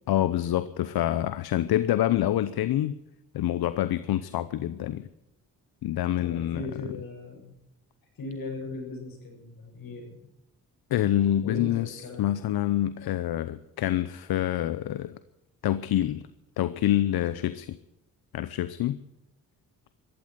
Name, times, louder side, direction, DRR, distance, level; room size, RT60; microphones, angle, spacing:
voice 1, 0.1-3.0 3.3-5.1 5.8-6.9 10.9-15.2 15.6-16.3 16.6-17.8 18.3-19.0, left 12 dB, 85° left, 13 dB, 0.8 m, -26 dB
voice 2, 6.2-7.5 8.2-10.3 11.4-12.4, left 2 dB, 65° left, 1 dB, 7.6 m, -38 dB
15.0 x 12.5 x 7.8 m, 0.88 s
cardioid pair, 95°, 36 cm